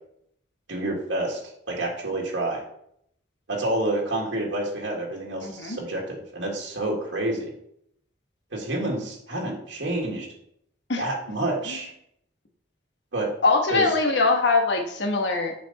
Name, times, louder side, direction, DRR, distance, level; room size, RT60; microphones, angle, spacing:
voice 1, 0.7-1.4 1.7-2.6 3.5-7.5 8.5-10.3 11.0-11.9 13.1-13.3 13.7-13.9, right 1 dB, 80° right, -2 dB, 1.9 m, -28 dB
voice 2, 5.4-5.8 10.9-11.0 11.7-11.8 13.4-15.5, left 3 dB, 70° left, 3 dB, 1.2 m, -22 dB
7.7 x 4.6 x 4.1 m, 0.72 s
head